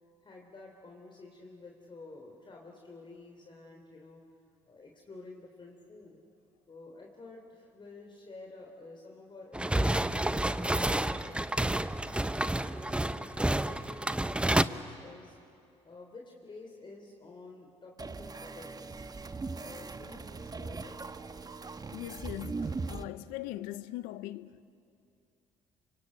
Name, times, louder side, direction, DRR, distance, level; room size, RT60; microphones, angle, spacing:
voice 1, 0.2-4.2 4.7-6.2 6.7-11.4 12.0-15.4 15.8-19.0 19.6-21.0, left 3 dB, 35° left, 3.5 m, -50 dB
sound 1, 9.5-14.6, right 1 dB, 10° right, 0.8 m, -29 dB
sound 2, 18.0-23.0, right 4 dB, 30° right, 1.2 m, -40 dB
voice 2, 21.9-24.6, left 15 dB, 85° left, 0.7 m, -40 dB
26.5 x 24.0 x 8.6 m
supercardioid pair, 60°, 13 cm